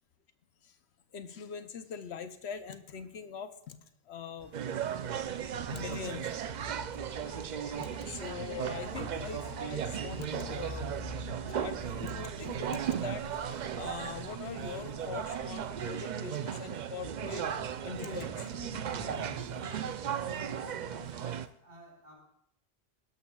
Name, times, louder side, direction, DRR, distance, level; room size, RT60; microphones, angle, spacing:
voice 1, 1.1-3.8 4.1-4.5 5.7-6.3 7.1-13.2 13.7-17.4 17.8-18.6 19.0-19.1 19.4-19.7, left 7 dB, 75° left, 9 dB, 1.0 m, -43 dB
sound 1, 4.4-21.4, equal, 35° left, 2.9 m, -48 dB
sound 2, 4.5-21.5, right 9 dB, 55° right, 0.5 m, -36 dB
sound 3, 5.0-15.8, left 4 dB, 55° left, 0.8 m, -53 dB
voice 2, 20.2-22.2, equal, 40° right, -2 dB, 4.0 m, -53 dB
20.0 x 11.5 x 2.3 m, 0.71 s
omnidirectional pair, 1.1 m